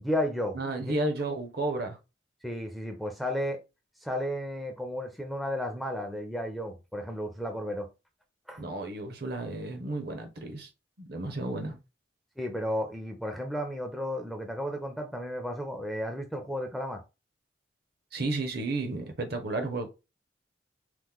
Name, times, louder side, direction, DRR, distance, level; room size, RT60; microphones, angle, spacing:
voice 1, 0.0-0.9 2.4-3.6 4.0-7.9 8.5-8.6 12.4-17.0, equal, ahead, 0.4 m, -33 dB
voice 2, 0.5-2.0 8.6-10.7 11.0-11.8 18.1-19.9, right 2 dB, 55° right, 0.7 m, -32 dB
3.0 x 2.0 x 3.5 m
head